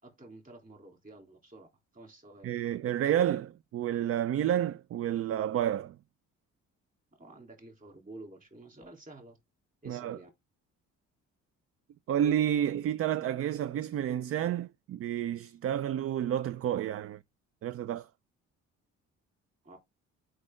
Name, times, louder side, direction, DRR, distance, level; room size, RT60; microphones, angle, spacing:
voice 1, 0.0-1.7 1.9-2.5 7.2-9.4 9.8-10.3 19.6-19.8, right 2 dB, 25° right, 3.3 m, -50 dB
voice 2, 2.4-6.0 9.9-10.2 12.1-17.2 17.6-18.1, right 10 dB, 50° right, 0.4 m, -30 dB
6.3 x 5.3 x 3.7 m
cardioid pair, 90°, 30 cm